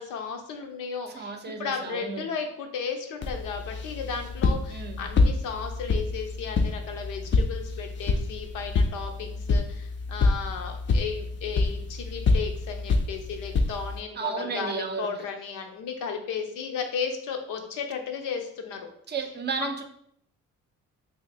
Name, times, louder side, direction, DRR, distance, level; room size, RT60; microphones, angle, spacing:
voice 1, 0.0-18.9 19.6-19.8, left 6 dB, 90° left, 4 dB, 0.6 m, -34 dB
voice 2, 1.1-2.3 4.7-5.0 14.2-15.1 19.1-19.8, right 5 dB, 35° right, 6 dB, 0.5 m, -33 dB
sound 1, 3.2-14.0, left 3 dB, 40° left, 0.4 m, -27 dB
2.8 x 2.6 x 3.9 m, 0.68 s
cardioid pair, 90°, 30 cm